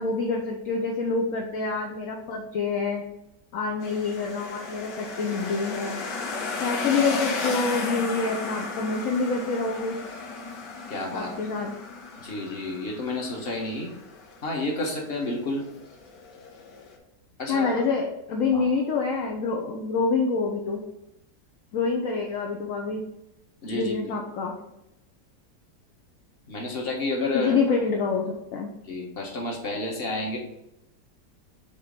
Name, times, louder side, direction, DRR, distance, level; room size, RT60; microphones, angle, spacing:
voice 1, 0.0-3.0 3.5-6.0 6.6-10.0 11.1-11.7 17.5-20.8 21.7-23.0 23.7-24.5 27.3-28.7, left 4 dB, 55° left, 1 dB, 1.1 m, -27 dB
sound 1, 3.8-17.0, left 4 dB, 80° left, 1.7 m, -35 dB
voice 2, 10.9-11.5 12.2-13.9 14.4-15.7 17.4-17.9 18.5-18.7 23.6-23.9 26.5-27.6 28.8-30.4, left 2 dB, 35° left, 0 dB, 1.4 m, -30 dB
7.2 x 3.0 x 5.2 m, 0.88 s
omnidirectional pair, 1.8 m